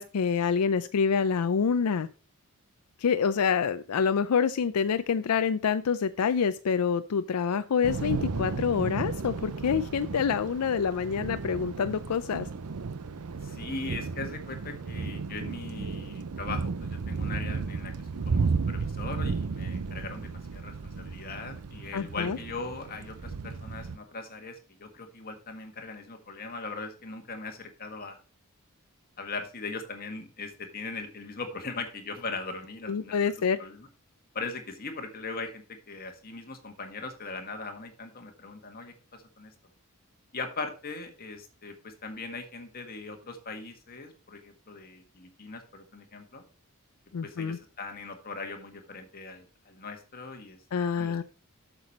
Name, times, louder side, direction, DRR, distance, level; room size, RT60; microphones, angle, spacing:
voice 1, 0.0-2.1 3.0-12.5 21.9-22.4 32.9-33.6 47.1-47.6 50.7-51.2, left 6 dB, 85° left, 12 dB, 0.4 m, -27 dB
Thunder / Rain, 7.8-24.0, right 4 dB, 85° right, 0.6 m, -34 dB
voice 2, 13.4-17.9 18.3-28.2 29.2-33.1 33.6-33.9 34.3-39.5 40.3-46.4 47.2-50.6 50.9-51.2, left 3 dB, 45° left, 5 dB, 1.7 m, -40 dB
8.0 x 6.9 x 4.2 m, 0.35 s
head